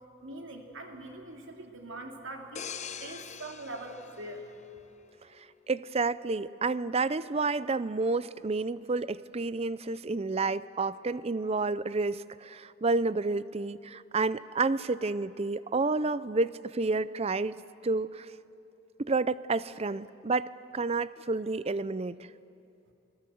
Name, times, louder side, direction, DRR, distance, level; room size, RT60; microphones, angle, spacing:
voice 1, 0.2-2.7 3.0-4.6, right 2 dB, 60° right, 2 dB, 3.1 m, -42 dB
sound 1, 2.6-5.2 5.7-5.9, left 7 dB, 35° left, 0.8 m, -43 dB
voice 2, 5.7-17.6 17.8-18.3 19.0-22.2, right 3 dB, 30° right, 17 dB, 0.5 m, -30 dB
28.5 x 21.0 x 7.8 m, 2.7 s
head